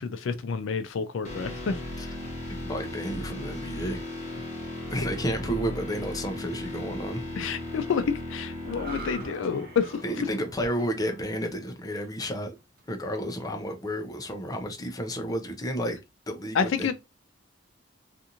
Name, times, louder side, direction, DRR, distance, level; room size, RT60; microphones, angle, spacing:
voice 1, 0.0-1.8 7.4-10.0 16.5-16.9, left 6 dB, 80° left, 0.4 m, -28 dB
sound 1, 1.2-11.2, left 1 dB, 40° left, 1.1 m, -37 dB
voice 2, 2.6-4.1 4.9-7.2 10.0-12.5 12.9-16.0 16.3-16.9, equal, 20° left, 0.5 m, -31 dB
sound 2, 8.7-12.1 12.6-12.8, right 3 dB, 50° right, 0.8 m, -45 dB
2.5 x 2.5 x 2.8 m
head